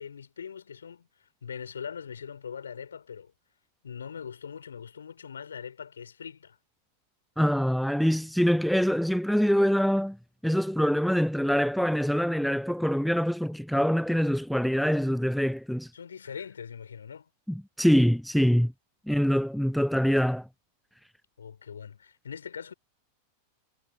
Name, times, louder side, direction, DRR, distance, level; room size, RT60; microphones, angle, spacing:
voice 1, 0.0-3.3 3.8-6.6 15.9-17.3 21.4-22.7, left 7 dB, 70° left, 4.6 m, -41 dB
voice 2, 7.4-10.2 10.4-15.9 17.5-18.7 19.1-20.5, equal, ahead, 0.4 m, -24 dB
figure-of-eight pair, 90°, 0 cm